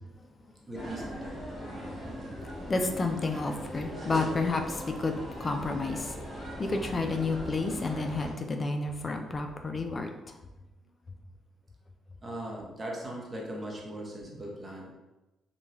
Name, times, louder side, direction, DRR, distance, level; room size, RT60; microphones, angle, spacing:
sound 1, 0.7-8.3, equal, 15° left, 1.2 m, -40 dB
voice 1, 0.7-1.4 12.2-14.9, right 1 dB, 25° right, -2 dB, 0.8 m, -39 dB
voice 2, 2.7-6.1 6.6-10.1, left 3 dB, 35° left, 4 dB, 0.4 m, -30 dB
2.9 x 2.3 x 2.7 m, 1.0 s
cardioid pair, 90°, 0 cm